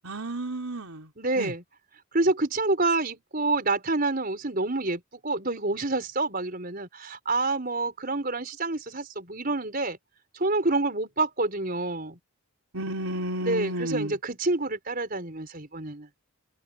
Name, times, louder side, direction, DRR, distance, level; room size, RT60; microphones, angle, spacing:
voice 1, 0.0-1.1 1.4-1.5 12.7-14.2, right 1 dB, 80° right, 3.7 m, -31 dB
voice 2, 1.2-1.6 2.1-10.0 10.3-12.2 13.4-16.1, right 2 dB, 40° right, 5.3 m, -28 dB
head